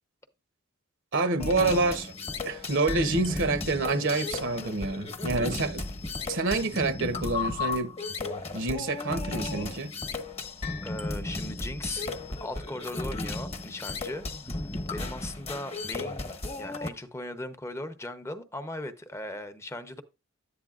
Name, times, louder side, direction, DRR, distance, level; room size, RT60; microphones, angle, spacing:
voice 1, 1.1-2.1 2.4-5.8 6.3-7.9 8.5-9.9, right 3 dB, 60° right, 0.9 m, -27 dB
sound 1, 1.4-16.9, left 3 dB, 30° left, 1.1 m, -34 dB
voice 2, 10.8-12.1 12.4-16.3 16.6-20.0, left 1 dB, 15° left, 0.7 m, -38 dB
11.0 x 8.6 x 2.4 m
head